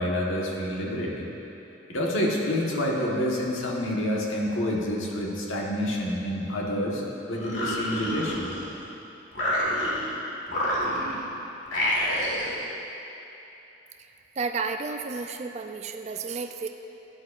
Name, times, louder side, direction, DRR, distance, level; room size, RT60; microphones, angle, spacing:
voice 1, 0.0-1.3 1.9-8.4, left 1 dB, 90° left, -2 dB, 1.3 m, -28 dB
sound 1, 7.3-8.9 9.3-10.1 10.5-11.3 11.7-12.6, equal, 70° left, 1.8 m, -28 dB
voice 2, 14.4-16.7, right 4 dB, 35° right, 5 dB, 0.4 m, -32 dB
13.0 x 9.5 x 2.5 m, 3.0 s
head